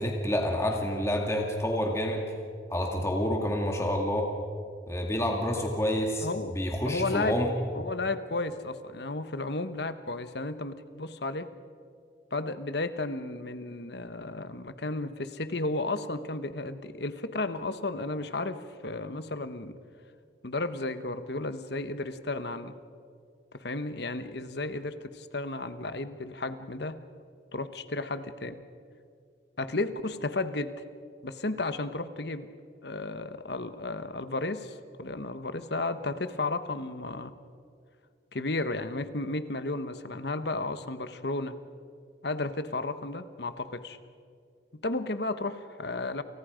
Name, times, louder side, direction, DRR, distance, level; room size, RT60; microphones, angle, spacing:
voice 1, 0.0-2.2 2.7-4.3 4.9-6.3 6.5-7.5, equal, 15° left, 1 dB, 2.2 m, -28 dB
voice 2, 6.2-6.6 6.9-7.4 7.7-11.5 12.3-19.8 20.4-22.7 23.5-27.0 27.5-28.6 29.6-30.8 31.2-32.5 32.8-37.3 38.3-41.5 42.2-44.0 44.8-46.2, left 2 dB, 60° left, 11 dB, 1.2 m, -33 dB
29.5 x 29.0 x 5.2 m, 2.3 s
head